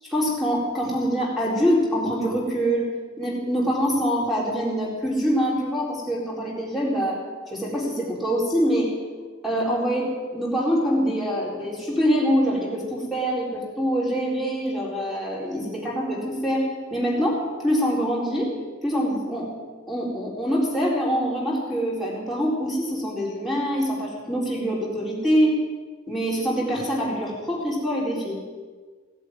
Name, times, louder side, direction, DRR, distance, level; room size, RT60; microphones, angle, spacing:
voice 1, 0.1-2.9 3.2-7.2 7.5-8.9 9.4-16.6 16.9-18.5 18.8-19.6 19.9-25.6 26.1-28.4, equal, ahead, -4 dB, 4.0 m, -24 dB
17.0 x 8.2 x 9.4 m, 1.4 s
head